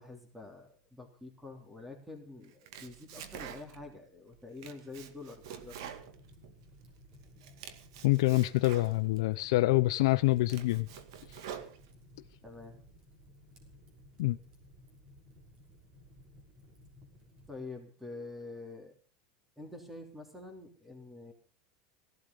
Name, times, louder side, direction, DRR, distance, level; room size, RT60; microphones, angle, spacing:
voice 1, 0.0-5.8 12.4-12.8 17.5-18.9 19.6-21.3, left 3 dB, 5° right, 3.2 m, -47 dB
Domestic sounds home sounds, 2.4-4.0 4.3-6.9 7.2-9.2 9.8-9.9 10.3-12.2, right 9 dB, 75° right, 2.1 m, -47 dB
Fire, 5.4-17.5, left 1 dB, 40° right, 5.9 m, -58 dB
voice 2, 8.0-10.9 14.2-14.4, left 19 dB, 75° left, 0.7 m, -26 dB
17.5 x 12.5 x 5.3 m
supercardioid pair, 135°, 3 cm